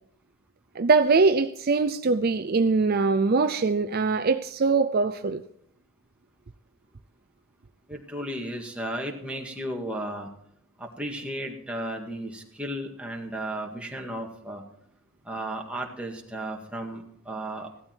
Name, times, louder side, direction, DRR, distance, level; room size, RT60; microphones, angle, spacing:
voice 1, 0.8-5.4, right 4 dB, 50° right, 0.5 m, -22 dB
voice 2, 7.9-10.3 10.8-14.6 15.3-17.7, right 1 dB, 5° right, 1.9 m, -34 dB
15.5 x 12.5 x 4.5 m
head